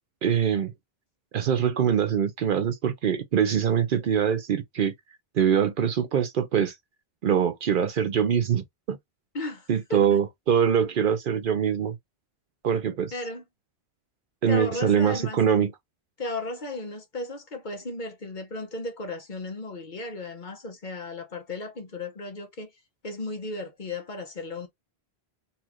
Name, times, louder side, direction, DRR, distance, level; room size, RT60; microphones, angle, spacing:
voice 1, 0.2-0.7 1.3-4.9 5.3-6.7 7.2-9.0 9.7-12.0 12.6-13.1 14.4-15.7, right 8 dB, 60° right, 0.7 m, -23 dB
voice 2, 9.3-10.2 13.1-13.4 14.5-15.4 16.2-22.7 23.0-24.7, left 2 dB, 50° left, 1.0 m, -35 dB
4.1 x 2.4 x 2.9 m
omnidirectional pair, 1.1 m